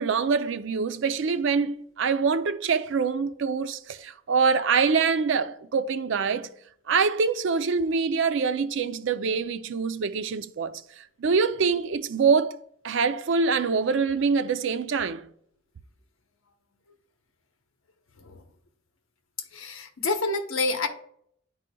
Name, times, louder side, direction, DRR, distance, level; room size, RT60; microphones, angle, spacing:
voice 1, 0.0-6.5 6.9-10.8 11.2-12.6 12.8-15.3, right 5 dB, 65° right, 0.4 m, -25 dB
voice 2, 19.5-20.9, left 3 dB, 80° left, 0.9 m, -28 dB
10.0 x 4.8 x 2.2 m
head